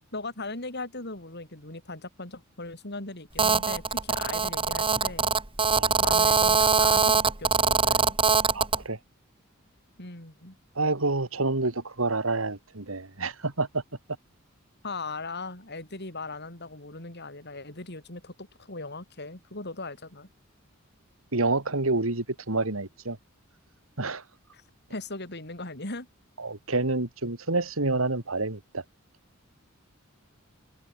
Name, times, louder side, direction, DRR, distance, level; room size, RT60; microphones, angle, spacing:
voice 1, 0.1-5.3 6.0-8.1 10.0-10.6 14.8-20.3 24.5-24.6 24.9-26.1, left 3 dB, 55° left, 8.0 m, -38 dB
Telephone, 3.4-8.8, right 5 dB, 25° right, 3.2 m, -23 dB
voice 2, 8.5-9.0 10.8-13.8 21.3-23.2 24.0-24.2 26.4-28.8, right 2 dB, 75° right, 2.6 m, -28 dB
head